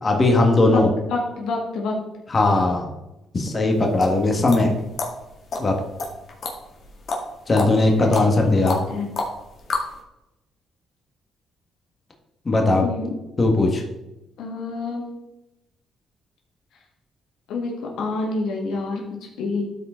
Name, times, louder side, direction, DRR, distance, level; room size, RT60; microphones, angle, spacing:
voice 1, 0.0-0.9 2.3-2.9 3.3-4.7 5.6-5.7 7.5-8.8 12.4-12.9 13.4-13.8, left 2 dB, 30° left, 2 dB, 1.6 m, -18 dB
voice 2, 0.6-2.0 7.8-8.2 8.5-9.1 12.8-13.2 14.4-15.1 17.5-19.7, left 3 dB, 80° left, 0 dB, 2.0 m, -28 dB
sound 1, 3.7-10.0, left 3 dB, 55° left, 2.1 m, -30 dB
12.5 x 4.9 x 3.8 m, 0.94 s
cardioid pair, 90°, 0 cm